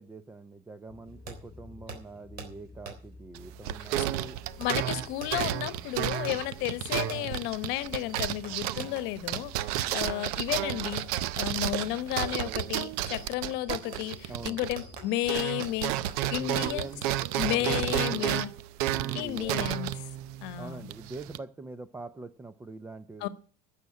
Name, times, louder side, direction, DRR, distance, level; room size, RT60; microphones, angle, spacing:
voice 1, 0.0-4.4 14.3-14.6 16.4-17.0 17.4-18.5 19.0-19.8 20.6-23.3, right 3 dB, 10° right, 0.5 m, -43 dB
sound 1, 0.9-15.1, left 4 dB, 20° left, 1.4 m, -52 dB
Fireworks, 1.3-1.4 1.9-2.0 2.4-2.5 2.9-3.0 4.0-9.6 10.5-10.6 10.9-11.2 12.2-17.6 17.9-18.2, right 5 dB, 50° right, 3.6 m, -45 dB
sound 2, 3.4-15.0 15.2-21.4, right 14 dB, 85° right, 0.6 m, -32 dB
voice 2, 4.6-16.0 16.3-16.9 17.4-18.5 19.1-19.9 20.4-20.9 23.2-23.3, left 15 dB, 65° left, 1.0 m, -32 dB
10.5 x 7.3 x 9.6 m
cardioid pair, 140°, 19 cm